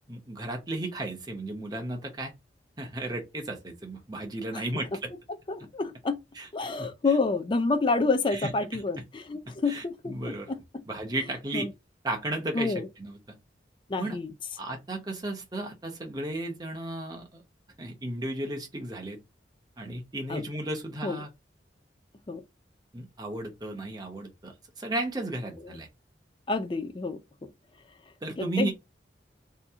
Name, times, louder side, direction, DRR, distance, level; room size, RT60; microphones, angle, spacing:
voice 1, 0.1-2.3 2.8-5.1 6.4-6.5 6.8-6.9 8.3-8.8 9.7-10.5 10.9-11.7 12.0-13.4 14.0-14.2 14.6-17.4 17.8-19.2 19.8-21.3 22.9-25.9 28.2-28.7, right 1 dB, 20° right, 0.8 m, -34 dB
voice 2, 5.5-6.2 6.5-10.8 11.5-11.7 12.5-12.9 13.9-14.3 20.3-20.4 21.0-21.2 22.3-22.4 26.5-27.5 28.4-28.7, left 3 dB, 25° left, 0.4 m, -29 dB
2.8 x 2.5 x 3.5 m
head